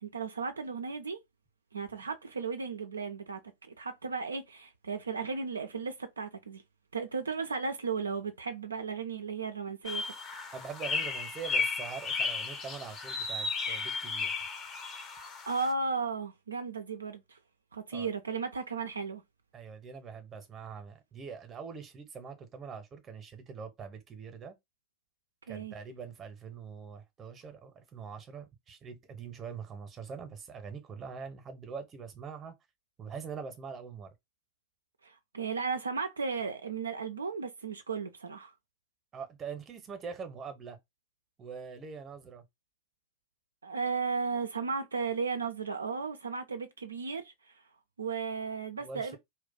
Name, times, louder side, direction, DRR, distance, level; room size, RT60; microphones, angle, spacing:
voice 1, 0.0-1.2 1.7-6.6 6.9-10.0 15.0-17.4 17.7-19.2 25.5-25.8 35.0-38.5 43.6-47.6 48.0-49.2, right 5 dB, 75° right, 0.3 m, -35 dB
sound 1, 9.8-15.7, left 4 dB, 25° left, 0.6 m, -34 dB
voice 2, 10.5-14.3 17.9-18.1 19.5-24.5 25.5-32.5 33.0-34.1 39.1-40.8 41.4-42.4 48.8-49.2, right 6 dB, 25° right, 0.7 m, -43 dB
2.3 x 2.1 x 3.9 m
figure-of-eight pair, 90°, 0 cm